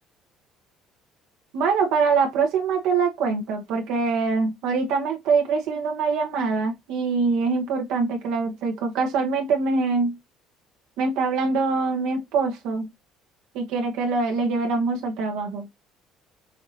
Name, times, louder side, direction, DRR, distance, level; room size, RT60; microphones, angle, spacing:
voice 1, 1.5-10.1 11.0-12.9 13.5-15.8, right 4 dB, 75° right, 1.1 m, -24 dB
5.7 x 2.7 x 2.8 m
cardioid pair, 105°, 0 cm